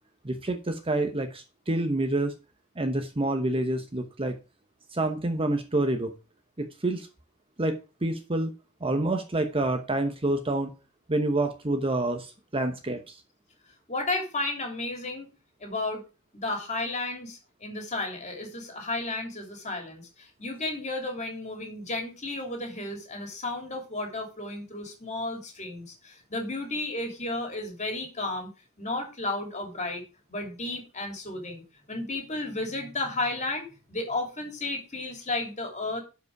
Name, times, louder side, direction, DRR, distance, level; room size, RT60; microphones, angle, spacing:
voice 1, 0.2-2.3 2.8-4.4 4.9-6.1 6.6-7.1 7.6-8.5 8.8-10.7 11.1-13.2, right 2 dB, 25° right, 6 dB, 1.0 m, -28 dB
voice 2, 13.9-15.3 15.6-16.0 16.3-28.5 28.8-30.0 30.3-31.6 31.9-36.0, left 2 dB, 30° left, 2 dB, 3.1 m, -33 dB
11.5 x 5.3 x 4.8 m, 0.30 s
head